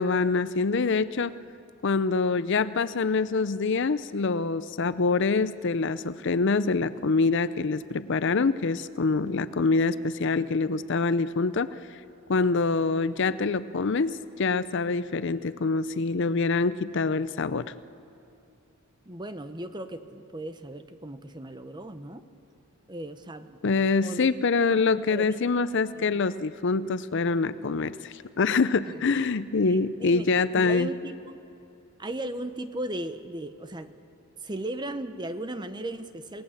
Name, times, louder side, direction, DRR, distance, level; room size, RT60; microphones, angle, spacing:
voice 1, 0.0-1.3 1.8-11.8 12.3-17.7 23.6-30.9, left 4 dB, 55° left, 15 dB, 0.5 m, -25 dB
voice 2, 19.0-22.2 22.9-23.6 24.0-24.3 24.7-25.4 26.0-26.2 28.9-29.1 29.7-30.3 30.5-31.4 32.0-33.9 34.4-36.4, right 1 dB, 20° right, 10 dB, 0.9 m, -37 dB
27.5 x 18.5 x 7.3 m, 2.8 s
head